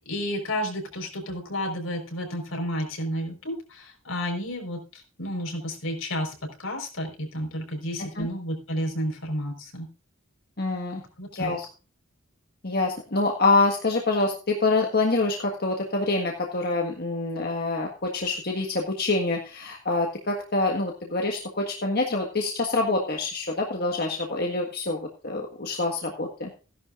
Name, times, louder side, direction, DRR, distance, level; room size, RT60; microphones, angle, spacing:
voice 1, 0.1-9.9 10.9-11.6, equal, 75° left, 3 dB, 4.7 m, -31 dB
voice 2, 10.6-11.0 11.3-11.7 12.6-26.5, left 3 dB, 50° left, 1 dB, 1.7 m, -26 dB
16.5 x 11.0 x 2.5 m, 0.34 s
head